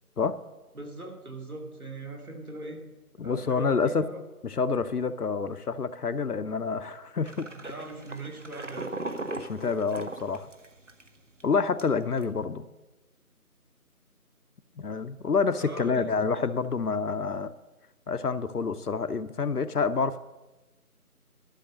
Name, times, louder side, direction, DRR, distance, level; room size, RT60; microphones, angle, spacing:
voice 1, 0.7-2.8 3.2-4.2 7.5-8.9 15.5-16.4, right 2 dB, 70° right, 2 dB, 2.5 m, -40 dB
voice 2, 3.2-4.1 4.4-7.5 9.4-10.5 11.4-12.6 14.8-17.5 18.1-20.2, left 5 dB, 80° left, 12 dB, 0.8 m, -28 dB
sound 1, 7.3-11.1 11.4-11.5 11.8-12.2, right 2 dB, 55° right, 0.9 m, -38 dB
11.5 x 6.6 x 6.3 m, 1.1 s
figure-of-eight pair, 175°, 45 cm